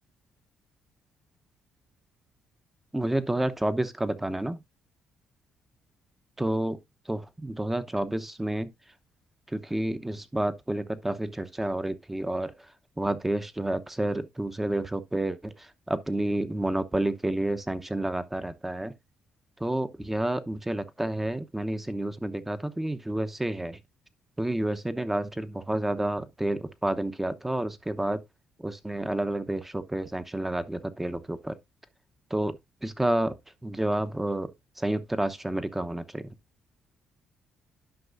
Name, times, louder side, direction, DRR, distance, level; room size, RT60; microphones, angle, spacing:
voice 1, 2.9-4.6 6.4-6.8 7.1-8.7 9.5-12.5 13.0-18.9 19.6-23.8 24.4-28.2 28.6-31.6 32.3-33.4 33.6-36.3, right 1 dB, 10° right, 0.8 m, -30 dB
11.5 x 5.5 x 2.5 m
cardioid pair, 100°, 3 cm